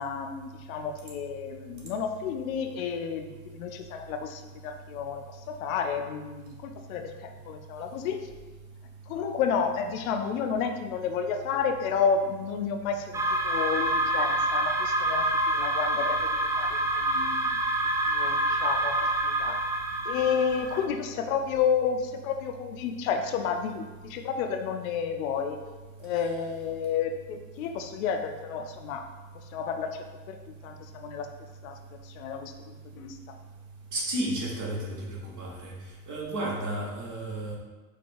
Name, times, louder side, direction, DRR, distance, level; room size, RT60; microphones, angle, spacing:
voice 1, 0.0-8.3 9.1-16.3 16.6-17.6 18.1-19.6 20.1-25.6 26.0-29.1 29.5-31.3 31.6-31.8 32.0-33.2, left 6 dB, 70° left, 6 dB, 0.5 m, -31 dB
sound 1, 13.1-20.9, right 1 dB, 10° right, 0.3 m, -27 dB
voice 2, 33.9-35.7 36.1-37.6, right 1 dB, 45° right, -3 dB, 1.2 m, -32 dB
4.7 x 2.2 x 4.3 m, 1.2 s
figure-of-eight pair, 45°, 43 cm